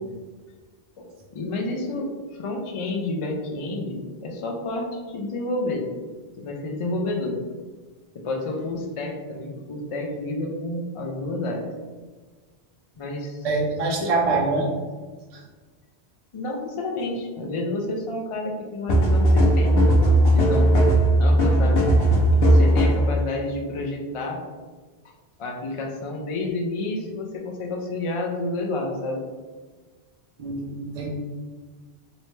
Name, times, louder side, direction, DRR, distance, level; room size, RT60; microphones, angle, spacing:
voice 1, 1.0-3.9 4.2-5.9 6.4-7.4 8.1-11.7 13.0-13.5 13.8-14.1 16.3-20.7 21.2-21.9 22.3-24.4 25.4-29.2, left 2 dB, 50° left, 1 dB, 0.4 m, -30 dB
voice 2, 13.4-14.7 15.3-15.4 30.4-31.1, right 3 dB, 45° right, -1 dB, 0.6 m, -24 dB
sound 1, 18.9-23.1, right 1 dB, 70° left, 0.8 m, -17 dB
3.1 x 2.7 x 3.1 m, 1.4 s
omnidirectional pair, 1.1 m